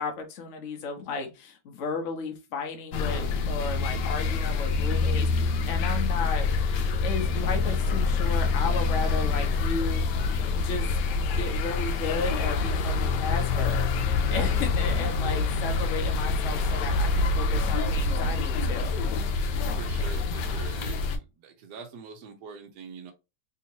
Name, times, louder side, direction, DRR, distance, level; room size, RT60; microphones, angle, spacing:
voice 1, 0.0-10.0 10.5-13.9 14.3-18.9, left 4 dB, 55° left, 4 dB, 1.0 m, -34 dB
sound 1, 2.9-21.2, left 4 dB, 90° left, 1.2 m, -26 dB
voice 2, 14.2-14.5 19.7-23.1, right 5 dB, 75° right, 4 dB, 1.3 m, -44 dB
3.5 x 2.8 x 2.8 m, 0.27 s
omnidirectional pair, 1.8 m